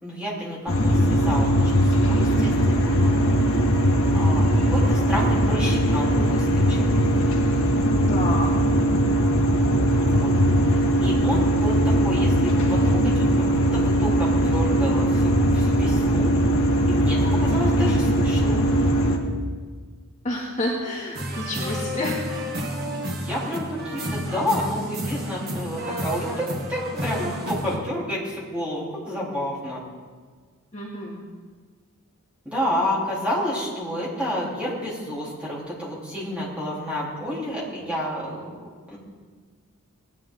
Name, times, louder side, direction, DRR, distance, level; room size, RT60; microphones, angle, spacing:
voice 1, 0.0-3.0 4.1-6.9 10.0-10.3 10.7-16.3 16.9-18.7 23.2-29.8 32.4-39.0, equal, 5° right, -7 dB, 3.7 m, -30 dB
sound 1, 0.7-19.2, equal, 70° left, 1.8 m, -20 dB
voice 2, 8.1-8.5 17.3-17.8 20.2-22.4 30.7-31.2, left 1 dB, 35° left, -5 dB, 2.5 m, -30 dB
sound 2, 21.1-27.8, equal, 45° right, 1.8 m, -30 dB
20.0 x 11.5 x 3.8 m, 1.5 s
head